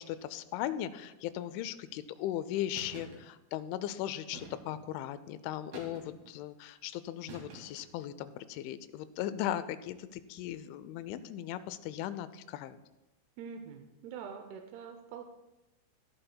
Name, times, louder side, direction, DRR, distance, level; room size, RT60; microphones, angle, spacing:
voice 1, 0.0-12.8, left 12 dB, 85° left, 14 dB, 3.0 m, -38 dB
sound 1, 2.7-3.2 4.3-4.9 5.7-6.3 7.3-7.9, right 2 dB, 60° right, 3.8 m, -48 dB
voice 2, 13.4-15.2, right 7 dB, 80° right, 5 dB, 2.3 m, -44 dB
18.0 x 11.5 x 2.2 m, 0.98 s
omnidirectional pair, 5.3 m